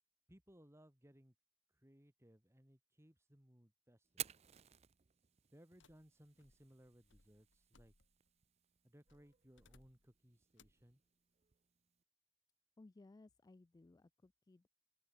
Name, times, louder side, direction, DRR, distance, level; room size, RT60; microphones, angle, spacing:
voice 1, 0.3-1.3 1.7-4.3 5.5-7.9 8.8-11.0, equal, 15° right, 2.8 m, -65 dB
Fire, 4.0-12.0, right 11 dB, 35° right, 0.5 m, -55 dB
sound 1, 5.8-8.4 9.1-10.2 10.6-10.9, left 3 dB, 90° left, 2.2 m, -71 dB
voice 2, 12.8-14.7, left 2 dB, 20° left, 0.3 m, -62 dB
open air
head